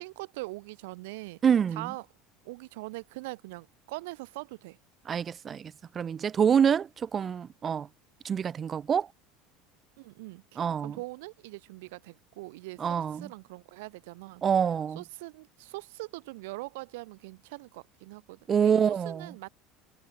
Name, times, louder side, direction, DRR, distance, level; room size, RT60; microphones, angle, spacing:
voice 1, 0.0-1.4 1.8-2.0 2.4-4.8 10.0-14.4 15.0-19.5, right 22 dB, 80° right, 2.6 m, -42 dB
voice 2, 1.4-1.9 5.1-7.9 8.2-9.1 10.6-11.0 12.8-13.3 14.4-15.0 18.5-19.3, right 7 dB, 20° right, 0.4 m, -26 dB
cardioid pair, 180°, 0 cm